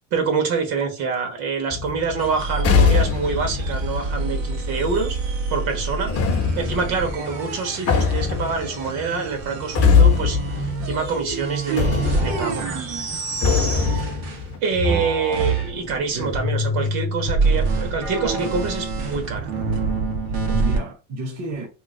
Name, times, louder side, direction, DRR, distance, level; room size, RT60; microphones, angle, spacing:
voice 1, 0.1-5.2 5.5-6.1 6.6-12.6 14.6-19.5, right 4 dB, 65° right, 1.4 m, -26 dB
sound 1, 1.7-5.1 6.1-11.5 11.8-14.6, left 6 dB, 35° left, 0.7 m, -22 dB
sound 2, 2.2-14.5 14.7-20.8, right 3 dB, 85° right, 1.2 m, -27 dB
voice 2, 13.6-14.1 14.9-15.1 16.1-16.3 20.3-21.7, right 2 dB, 45° right, 0.9 m, -33 dB
3.0 x 2.3 x 3.6 m
cardioid pair, 135°, 40 cm